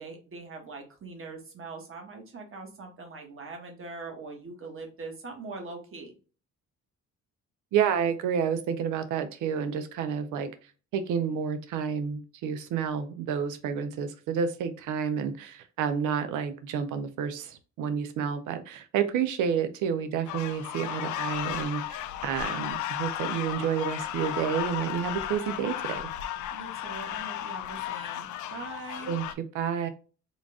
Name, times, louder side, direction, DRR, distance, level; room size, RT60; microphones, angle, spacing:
voice 1, 0.0-6.1 26.5-29.1, right 3 dB, 45° right, 3 dB, 1.3 m, -42 dB
voice 2, 7.7-10.5 10.9-26.1 29.1-29.2 29.5-29.9, right 7 dB, 90° right, 9 dB, 0.6 m, -30 dB
sound 1, 20.3-29.3, left 11 dB, 80° left, 0.5 m, -34 dB
3.8 x 2.4 x 3.5 m, 0.35 s
cardioid pair, 90°, 30 cm